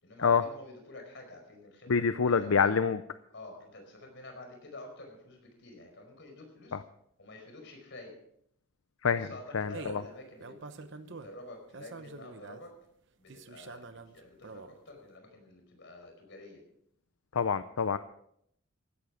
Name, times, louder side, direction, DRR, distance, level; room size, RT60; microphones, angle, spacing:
voice 1, 0.0-2.7 3.3-6.8 7.2-8.1 9.1-12.7 13.2-16.6, left 2 dB, 60° left, 3 dB, 5.0 m, -49 dB
voice 2, 1.9-3.0 9.0-9.3 9.5-10.0 17.3-18.0, left 6 dB, 85° left, 12 dB, 0.6 m, -26 dB
sound 1, 9.7-10.1 10.4-11.4 11.7-12.6 13.3-14.7, right 4 dB, 60° right, 0.9 m, -46 dB
15.5 x 12.5 x 5.0 m, 0.71 s
head